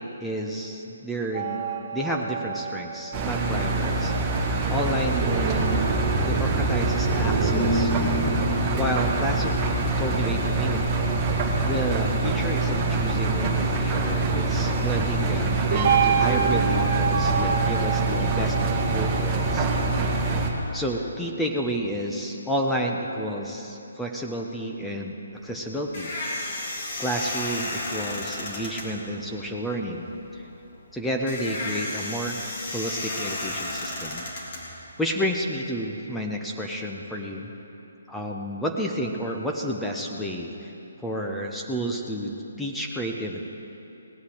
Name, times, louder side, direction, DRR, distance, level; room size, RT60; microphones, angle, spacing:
voice 1, 0.2-1.6 1.9-4.1 4.7-5.9 6.3-7.9 8.7-9.7 10.0-11.0 11.6-19.7 20.7-25.2 25.4-26.1 26.4-26.5 27.0-30.4 30.9-34.2 35.0-37.5 38.1-40.7 41.0-43.5, equal, 5° left, 0 dB, 1.0 m, -30 dB
sound 1, 1.3-4.0 5.0-11.9 15.7-19.9, right 5 dB, 40° right, 2.1 m, -28 dB
Engine, 3.1-20.5, right 2 dB, 20° right, 1.9 m, -25 dB
sound 2, 25.3-35.3, left 2 dB, 45° left, 3.5 m, -33 dB
17.5 x 8.5 x 7.9 m, 2.9 s
hypercardioid pair, 150°, 0 cm